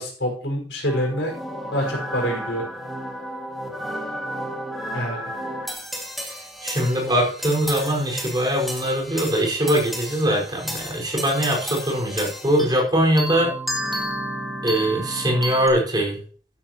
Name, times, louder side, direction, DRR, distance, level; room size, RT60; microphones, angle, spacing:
voice 1, 0.0-1.3 1.7-2.6 4.9-5.3, equal, 75° left, 1 dB, 5.5 m, -26 dB
sound 1, 0.9-12.8 13.2-15.7, equal, ahead, 2.2 m, -32 dB
voice 2, 6.6-13.5 14.6-16.2, equal, 25° right, -2 dB, 5.0 m, -22 dB
13.0 x 11.0 x 3.0 m, 0.44 s
head